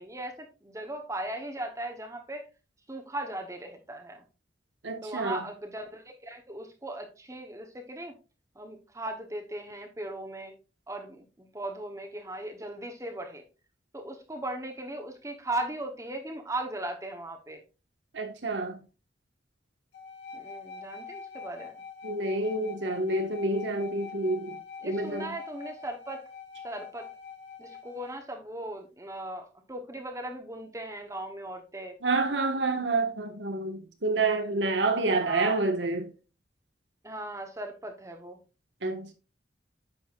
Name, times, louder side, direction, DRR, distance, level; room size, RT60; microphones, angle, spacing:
voice 1, 0.0-2.5 2.9-4.2 5.0-8.1 8.6-10.5 10.9-13.4 13.9-17.6 20.3-21.8 24.8-26.2 26.6-27.1 27.6-31.9 35.1-35.6 37.0-38.4, right 1 dB, 15° right, 1.0 m, -38 dB
voice 2, 4.8-5.4 18.1-18.8 22.0-24.6 24.8-25.3 32.0-36.1 38.8-39.1, right 2 dB, 90° right, 1.5 m, -28 dB
sound 1, 19.9-28.2, left 6 dB, 70° left, 2.8 m, -44 dB
9.5 x 6.5 x 2.5 m
head